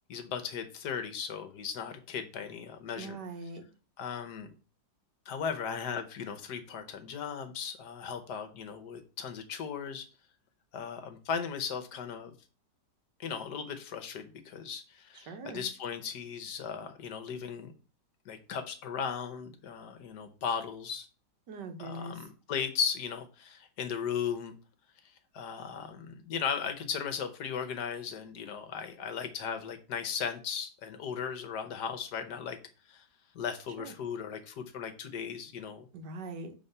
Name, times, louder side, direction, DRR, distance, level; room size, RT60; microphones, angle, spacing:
voice 1, 0.1-3.2 4.0-4.5 5.3-10.1 10.7-12.3 13.2-17.7 18.2-21.1 21.8-24.6 25.3-32.6 32.9-33.0 33.3-35.9, left 7 dB, 70° left, 1.4 m, -37 dB
voice 2, 2.9-3.6 15.1-15.7 21.5-22.2 33.8-33.9 35.9-36.5, right 3 dB, 70° right, 1.6 m, -42 dB
7.1 x 3.6 x 5.4 m
omnidirectional pair, 1.9 m